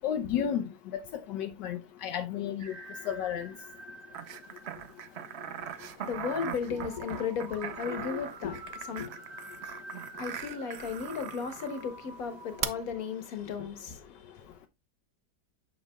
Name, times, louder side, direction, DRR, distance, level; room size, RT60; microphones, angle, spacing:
voice 1, 0.0-0.6 0.9-2.7 3.1-3.5, left 9 dB, 80° left, 1.3 m, -32 dB
sound 1, 2.6-5.4 6.7-13.8, right 2 dB, 45° right, 1.2 m, -48 dB
sound 2, 4.1-11.8 12.6-12.7, right 9 dB, 65° right, 0.6 m, -40 dB
voice 2, 5.6-9.1 10.2-14.5, left 6 dB, 55° left, 1.6 m, -35 dB
9.0 x 6.2 x 2.2 m
omnidirectional pair, 1.9 m